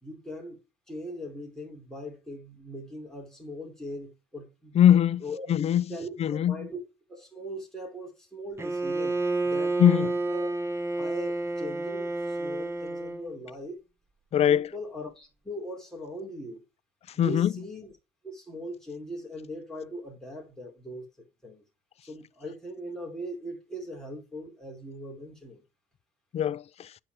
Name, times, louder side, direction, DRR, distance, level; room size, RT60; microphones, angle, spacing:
voice 1, 0.0-0.6 0.9-4.8 5.2-5.5 5.9-6.8 7.1-9.2 9.4-10.5 11.0-13.8 14.5-16.6 17.1-17.9 18.2-21.1 21.4-21.6 22.0-25.6, equal, 5° left, 4.2 m, -40 dB
voice 2, 4.7-5.2 5.5-5.8 6.2-6.7 9.8-10.1 14.3-14.7 17.2-17.5 26.3-26.9, left 10 dB, 40° left, 0.4 m, -22 dB
Bowed string instrument, 8.6-13.3, right 2 dB, 15° right, 1.1 m, -30 dB
8.8 x 5.8 x 4.7 m
cardioid pair, 110°, 17 cm